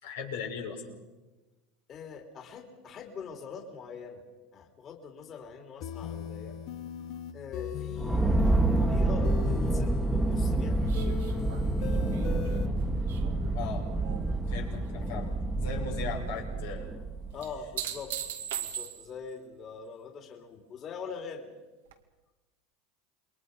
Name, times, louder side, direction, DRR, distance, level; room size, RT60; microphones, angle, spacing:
voice 1, 0.0-0.8 13.5-13.8 14.5-16.9, left 6 dB, 80° left, 0 dB, 5.6 m, -38 dB
voice 2, 1.9-4.2 4.5-6.6 7.3-11.1 17.3-18.1 18.6-21.5, left 5 dB, 40° left, 3 dB, 3.4 m, -43 dB
sound 1, 5.8-12.7, left 10 dB, 55° left, 1.2 m, -39 dB
sound 2, 8.0-17.6, right 2 dB, 5° right, 1.7 m, -28 dB
sound 3, 10.9-14.4 14.7-15.3 17.4-19.3 21.9-22.0, right 10 dB, 85° right, 2.0 m, -40 dB
28.5 x 22.0 x 5.6 m, 1.2 s
hypercardioid pair, 100°, 0 cm